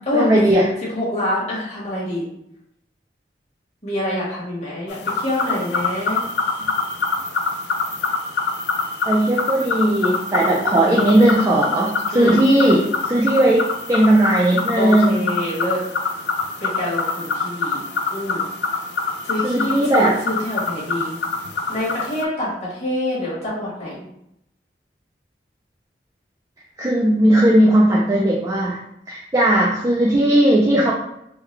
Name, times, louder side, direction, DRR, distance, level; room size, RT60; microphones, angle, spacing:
voice 1, 0.1-0.7 9.1-15.2 19.4-20.1 26.8-28.8 29.1-30.9, right 1 dB, 20° right, -4 dB, 0.4 m, -17 dB
voice 2, 0.9-2.3 3.8-6.2 10.5-11.0 12.1-12.4 14.8-15.8 16.6-17.8 18.1-18.5 19.2-21.1 21.7-24.1, left 1 dB, 40° left, -7 dB, 1.4 m, -26 dB
sound 1, 4.9-22.2, left 4 dB, 75° left, 0.4 m, -25 dB
3.7 x 2.2 x 3.2 m, 0.78 s
head